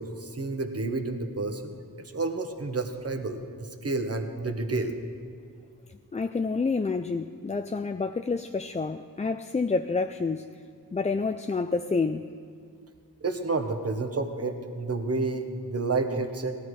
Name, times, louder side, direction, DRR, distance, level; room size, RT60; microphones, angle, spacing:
voice 1, 0.0-5.0 13.2-16.6, right 3 dB, 40° right, 6 dB, 1.2 m, -30 dB
voice 2, 5.9-10.4 10.9-12.3, left 4 dB, 20° left, 7 dB, 0.3 m, -28 dB
18.0 x 12.5 x 4.8 m, 2.2 s
wide cardioid pair, 85°, 36 cm